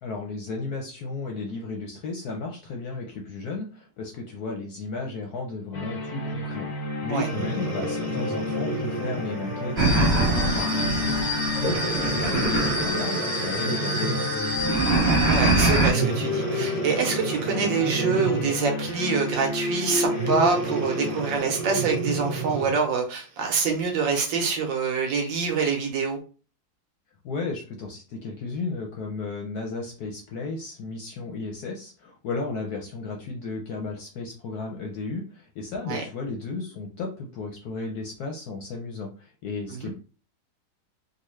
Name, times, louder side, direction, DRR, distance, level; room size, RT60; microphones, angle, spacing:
voice 1, 0.0-14.8 27.2-39.9, left 3 dB, 65° left, 1.0 m, -34 dB
sound 1, 5.7-21.4, left 3 dB, 85° left, 0.5 m, -31 dB
Breathing, 7.2-9.9 10.5-10.7 11.5-14.4 15.9-18.7 20.1-22.8 23.5-23.6, right 3 dB, 50° right, 1.3 m, -31 dB
sound 2, 9.8-15.9, right 2 dB, 25° right, 1.1 m, -24 dB
voice 2, 15.3-26.2 35.9-36.0 39.8-39.9, right 5 dB, 70° right, 1.5 m, -26 dB
3.9 x 2.3 x 3.1 m
omnidirectional pair, 2.2 m